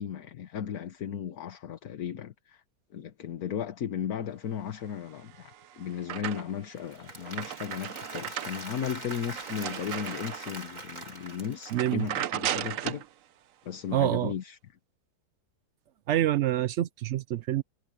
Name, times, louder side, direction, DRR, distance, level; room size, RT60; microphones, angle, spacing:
voice 1, 0.0-2.6 2.9-13.0 13.6-14.6, left 8 dB, 60° left, 1.5 m, -35 dB
sound 1, 5.2-6.7 7.1-10.7 11.2-11.3 11.7-13.1, right 11 dB, 65° right, 0.9 m, -36 dB
Applause / Crowd, 6.8-12.1, right 2 dB, 25° right, 2.6 m, -42 dB
voice 2, 11.7-12.1 13.9-14.3 16.1-17.6, right 12 dB, 90° right, 0.6 m, -26 dB
omnidirectional pair, 1.8 m